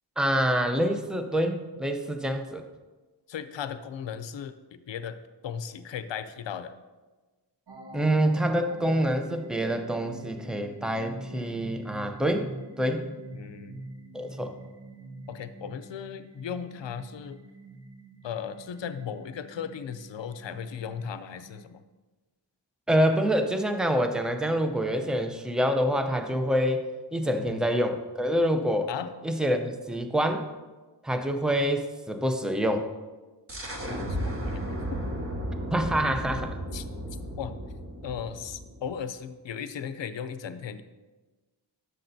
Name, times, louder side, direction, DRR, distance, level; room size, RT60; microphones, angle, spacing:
voice 1, 0.2-2.6 7.9-12.5 12.8-13.1 14.1-14.5 22.9-26.9 27.1-28.9 29.2-30.5 31.0-32.9 35.7-36.5, equal, ahead, 6 dB, 0.5 m, -26 dB
voice 2, 3.3-5.2 5.4-6.7 13.3-13.9 15.3-17.4 18.2-21.8 27.5-27.6 28.9-29.1 33.9-34.6 34.9-35.0 36.7-36.8 37.4-37.5 38.0-40.8, left 8 dB, 80° left, 11 dB, 0.6 m, -36 dB
sound 1, 7.7-21.7, right 1 dB, 65° right, 1.1 m, -44 dB
sound 2, 33.5-39.0, right 1 dB, 30° right, 1.2 m, -34 dB
11.5 x 6.7 x 2.7 m, 1.2 s
wide cardioid pair, 130°, 44 cm